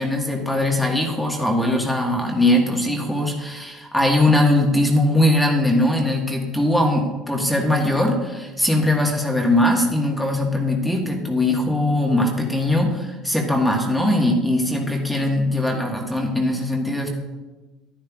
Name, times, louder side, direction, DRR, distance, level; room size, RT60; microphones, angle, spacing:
voice 1, 0.0-17.1, left 1 dB, 5° left, 1 dB, 1.5 m, -20 dB
11.5 x 11.0 x 2.4 m, 1.2 s
supercardioid pair, 110°, 0 cm